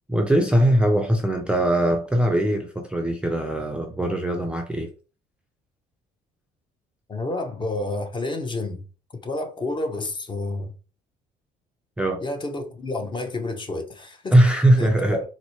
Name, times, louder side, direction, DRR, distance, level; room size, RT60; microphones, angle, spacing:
voice 1, 0.1-4.9 12.0-12.2 14.3-15.2, right 1 dB, 5° right, 0.5 m, -20 dB
voice 2, 7.1-8.8 9.1-10.7 12.2-14.3 14.7-15.3, left 2 dB, 30° left, 0.8 m, -29 dB
4.1 x 2.1 x 3.0 m
cardioid pair, 110°, 17 cm